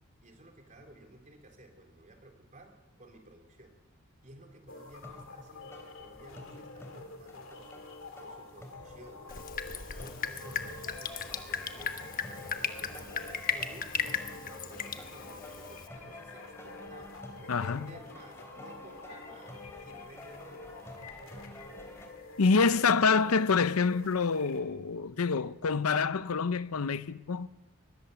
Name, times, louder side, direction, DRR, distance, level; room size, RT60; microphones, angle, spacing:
voice 1, 0.2-2.7 3.0-3.7 4.2-7.9 8.2-9.3 9.7-14.2 14.5-17.1 17.4-19.6 19.8-20.7, right 1 dB, 35° right, 3.7 m, -54 dB
sound 1, 4.7-24.6, left 3 dB, 65° left, 2.8 m, -48 dB
sound 2, 4.9-22.1, left 1 dB, 10° left, 3.4 m, -50 dB
Drip, 9.3-15.9, left 7 dB, 40° left, 1.2 m, -36 dB
voice 2, 17.5-17.9 22.4-27.5, left 5 dB, 85° left, 0.7 m, -27 dB
22.5 x 20.0 x 6.9 m
head